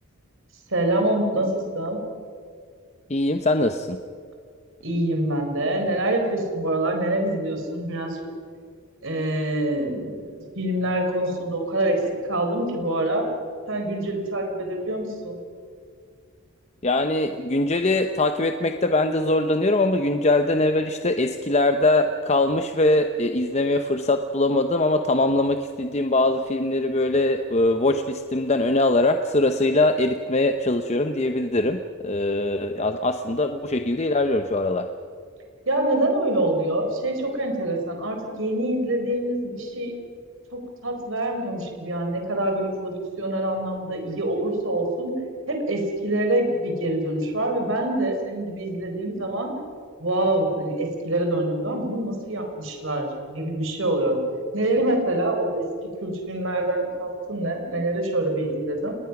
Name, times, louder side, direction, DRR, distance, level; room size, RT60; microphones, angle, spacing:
voice 1, 0.7-1.5 1.7-2.0 4.8-8.2 9.0-13.3 13.7-15.4 35.7-40.0 40.5-45.1 45.5-49.5 50.0-54.2 54.5-55.7 56.0-58.9, right 1 dB, 60° right, 3 dB, 4.2 m, -25 dB
voice 2, 3.1-4.0 16.8-34.9, left 2 dB, 30° left, 7 dB, 0.8 m, -22 dB
30.0 x 20.0 x 6.0 m, 2.1 s
head